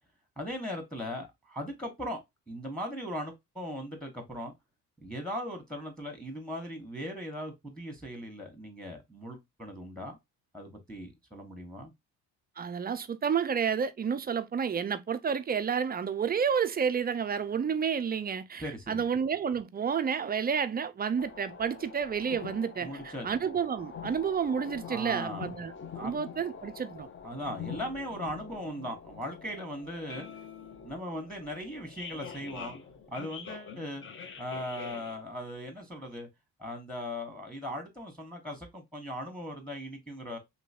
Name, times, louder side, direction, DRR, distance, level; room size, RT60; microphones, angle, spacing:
voice 1, 0.4-2.2 2.5-4.5 5.0-10.2 10.5-11.9 18.6-19.0 22.8-23.3 24.9-25.5 25.9-26.1 27.2-30.3 30.8-32.8 33.1-34.1 34.4-36.3 36.6-40.4, equal, ahead, 1.2 m, -38 dB
voice 2, 12.6-25.7 26.0-27.1, right 7 dB, 20° right, 0.4 m, -30 dB
sound 1, 21.2-35.2, left 6 dB, 25° left, 0.6 m, -45 dB
3.0 x 2.8 x 2.8 m
hypercardioid pair, 55°, 46 cm